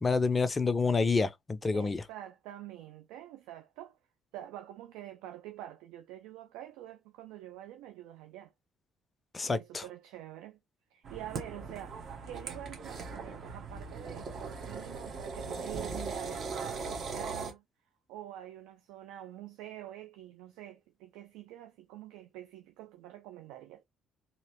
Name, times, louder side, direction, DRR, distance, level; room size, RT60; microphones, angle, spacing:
voice 1, 0.0-2.0 9.3-9.8, left 4 dB, 30° left, 0.4 m, -28 dB
voice 2, 1.7-4.0 4.3-8.5 9.4-10.6 10.9-12.0 12.3-17.6 18.1-23.8, right 12 dB, 65° right, 0.4 m, -46 dB
sound 1, 11.0-17.5, right 4 dB, 50° right, 0.9 m, -39 dB
2.9 x 2.7 x 2.8 m
figure-of-eight pair, 50°, 0 cm